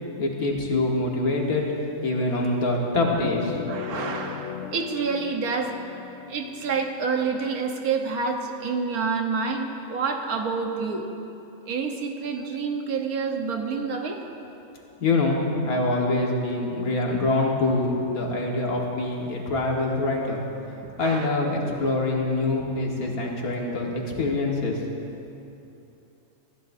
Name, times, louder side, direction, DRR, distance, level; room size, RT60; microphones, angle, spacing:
voice 1, 0.2-1.6 2.0-3.6 15.0-20.4 20.7-24.8, left 2 dB, 85° left, -1 dB, 2.1 m, -25 dB
sound 1, 3.2-7.9, left 7 dB, 65° left, 0.9 m, -37 dB
voice 2, 3.7-5.7 6.3-11.2 11.7-14.2 21.0-21.3, right 5 dB, 85° right, 3 dB, 1.6 m, -28 dB
20.0 x 14.5 x 2.7 m, 2.8 s
omnidirectional pair, 1.5 m